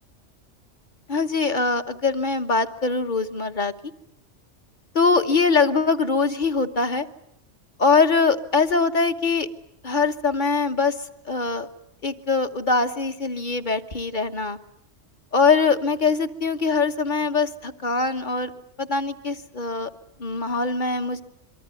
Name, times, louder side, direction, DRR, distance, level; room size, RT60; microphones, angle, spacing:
voice 1, 1.1-3.7 4.9-7.1 7.8-9.5 9.8-11.0 11.2-11.7 12.0-14.6 15.3-18.5 18.8-19.9 20.2-21.2, left 4 dB, 40° left, 8 dB, 1.4 m, -22 dB
26.0 x 23.5 x 9.0 m, 0.76 s
omnidirectional pair, 1.3 m